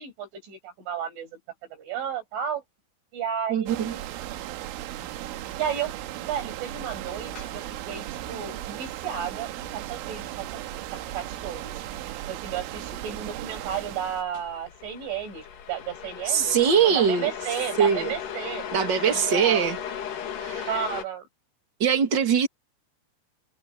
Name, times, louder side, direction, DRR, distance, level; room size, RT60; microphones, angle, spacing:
voice 1, 0.0-2.6 3.1-4.0 5.6-5.9 6.2-10.5 11.1-11.8 12.2-16.6 16.8-18.7 19.1-19.7 20.7-21.3, right 8 dB, 75° right, 8.9 m, -33 dB
voice 2, 3.5-3.9 16.3-17.3 17.8-18.1 18.7-19.8 20.4-20.7 21.8-22.5, right 7 dB, 35° right, 2.0 m, -22 dB
sound 1, 3.7-14.2, right 14 dB, 90° right, 3.8 m, -36 dB
sound 2, 6.5-21.0, left 8 dB, 60° left, 4.2 m, -38 dB
omnidirectional pair, 5.6 m